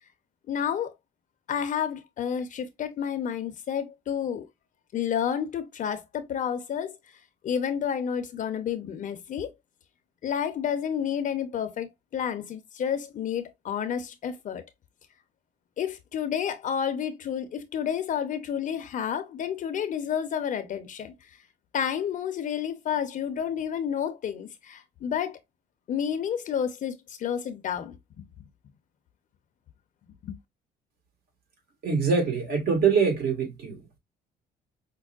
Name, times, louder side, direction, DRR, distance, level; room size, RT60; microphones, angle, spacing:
voice 1, 0.5-0.9 1.5-4.5 4.9-7.0 7.4-9.5 10.2-14.6 15.8-21.1 21.7-25.4 25.9-28.4 30.2-30.4, left 8 dB, 50° left, 0.6 m, -30 dB
voice 2, 31.8-33.8, right 5 dB, 65° right, 1.6 m, -24 dB
5.2 x 2.1 x 2.4 m
cardioid pair, 110°, 17 cm